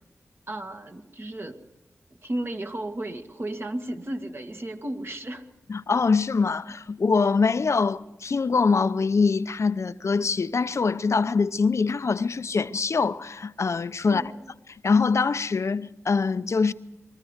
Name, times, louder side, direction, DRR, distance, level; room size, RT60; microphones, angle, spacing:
voice 1, 0.5-1.6 2.2-5.5 14.0-14.5, right 1 dB, 45° right, 2.1 m, -34 dB
voice 2, 5.7-14.2 14.8-16.7, left 4 dB, 60° left, 0.8 m, -23 dB
23.5 x 14.0 x 8.2 m
cardioid pair, 45°, 5 cm